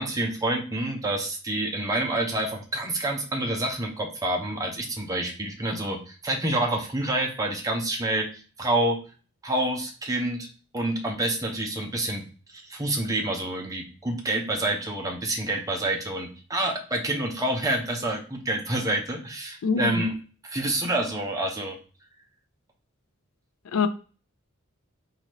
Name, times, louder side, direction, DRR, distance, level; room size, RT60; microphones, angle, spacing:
voice 1, 0.0-8.3 8.6-9.0 9.4-10.5 10.7-12.2 12.5-20.1 20.4-21.8, right 1 dB, 15° right, 1 dB, 0.7 m, -28 dB
voice 2, 19.6-20.0 23.7-23.9, left 5 dB, 80° left, 10 dB, 0.4 m, -24 dB
3.8 x 2.7 x 3.0 m, 0.37 s
head